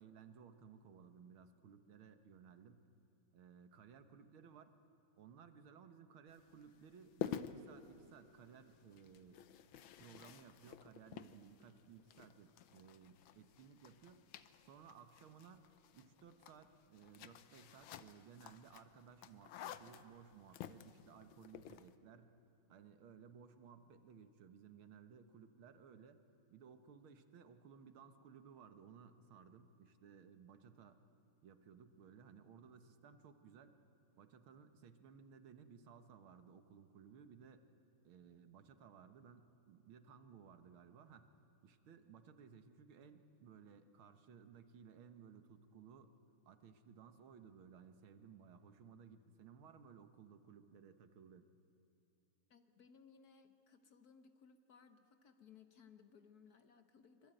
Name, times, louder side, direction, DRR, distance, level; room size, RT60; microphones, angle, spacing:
voice 1, 0.0-2.8 3.3-4.7 5.2-9.4 10.0-14.3 14.6-22.3 22.7-26.2 26.5-31.0 31.4-33.8 34.2-37.6 38.0-41.3 41.6-46.1 46.5-51.5, right 7 dB, 80° right, 8 dB, 2.1 m, -59 dB
sound 1, 6.3-21.9, left 9 dB, 75° left, 1.6 m, -51 dB
voice 2, 52.5-57.3, left 6 dB, 55° left, 8 dB, 1.3 m, -63 dB
25.0 x 23.0 x 9.0 m, 2.7 s
omnidirectional pair, 2.3 m